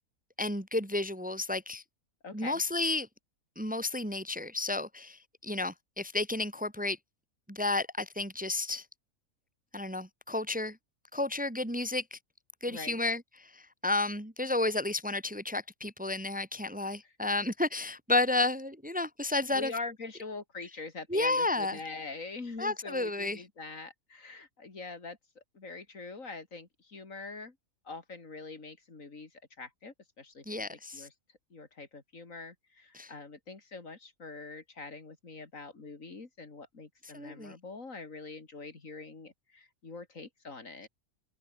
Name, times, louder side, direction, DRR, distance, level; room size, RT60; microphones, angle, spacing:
voice 1, 0.4-1.8 2.3-3.1 3.6-7.0 7.5-8.9 9.7-10.8 11.1-12.2 12.6-19.7 21.1-21.8 22.6-23.4 30.5-31.1 32.9-33.1 37.1-37.5, left 2 dB, 5° right, 1.6 m, -32 dB
voice 2, 2.2-2.6 12.7-13.0 19.5-27.6 27.8-31.1 31.5-40.9, left 3 dB, 65° left, 3.2 m, -44 dB
omnidirectional pair, 1.5 m